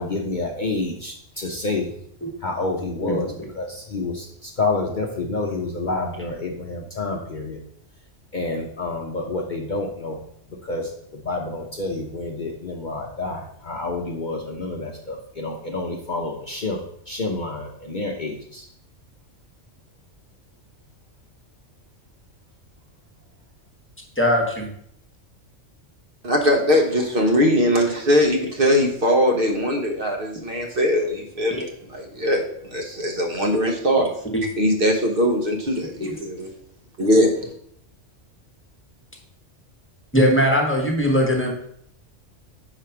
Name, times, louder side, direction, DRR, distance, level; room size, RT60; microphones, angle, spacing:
voice 1, 0.0-1.9 2.4-3.3 3.5-7.6 8.3-10.2 10.6-18.7, left 3 dB, 45° left, 1 dB, 0.7 m, -28 dB
voice 2, 3.0-3.4 24.2-24.7 34.3-34.4 36.0-36.1 40.1-41.5, equal, 10° left, 0 dB, 1.2 m, -20 dB
voice 3, 26.2-34.1 34.6-36.5 37.0-37.5, equal, 50° right, 2 dB, 1.1 m, -21 dB
5.0 x 4.9 x 5.8 m, 0.69 s
omnidirectional pair, 1.3 m